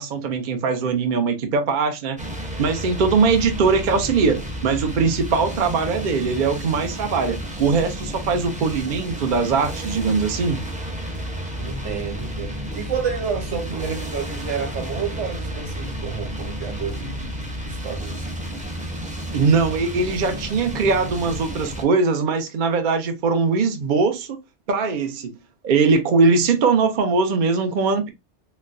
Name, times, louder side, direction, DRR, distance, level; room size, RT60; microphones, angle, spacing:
voice 1, 0.0-2.2 2.6-10.6 19.3-24.4 24.7-25.3 25.6-28.1, right 4 dB, 50° right, 0.7 m, -21 dB
sound 1, 2.2-21.8, equal, 10° right, 0.5 m, -31 dB
voice 2, 11.6-18.3, right 6 dB, 90° right, 1.2 m, -30 dB
4.0 x 2.1 x 2.4 m
omnidirectional pair, 1.2 m